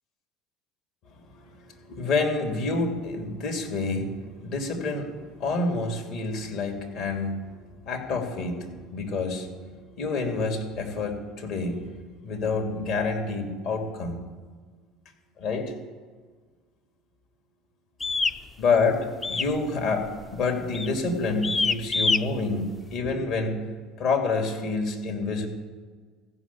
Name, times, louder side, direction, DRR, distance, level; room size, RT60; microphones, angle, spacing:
voice 1, 1.0-11.9 12.2-14.2 15.4-15.7 18.6-18.9 19.3-23.7 24.0-25.5, left 3 dB, 60° left, 3 dB, 2.7 m, -28 dB
sound 1, 18.0-18.4 19.2-19.6 19.9-20.2 20.7-21.0 21.4-22.2, left 4 dB, 25° left, 0.5 m, -25 dB
15.0 x 6.2 x 8.4 m, 1.5 s
hypercardioid pair, 75°, 0 cm